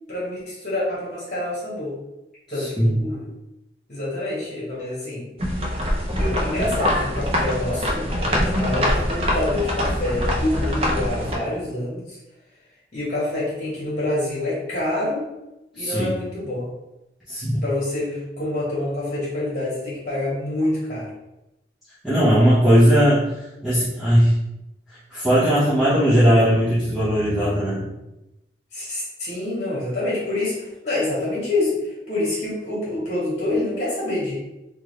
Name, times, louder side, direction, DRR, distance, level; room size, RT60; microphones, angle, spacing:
voice 1, 0.1-1.9 2.5-3.3 3.9-5.2 6.1-12.2 12.9-15.2 15.7-16.7 17.6-21.1 28.7-34.4, left 2 dB, 45° left, -7 dB, 1.3 m, -27 dB
voice 2, 2.6-2.9 15.8-16.1 17.3-17.6 22.0-23.3 23.6-24.3 25.1-27.8, equal, ahead, -13 dB, 0.9 m, -18 dB
sound 1, 5.4-11.3, equal, 35° right, 0.6 m, -23 dB
3.5 x 2.4 x 3.1 m, 0.93 s
head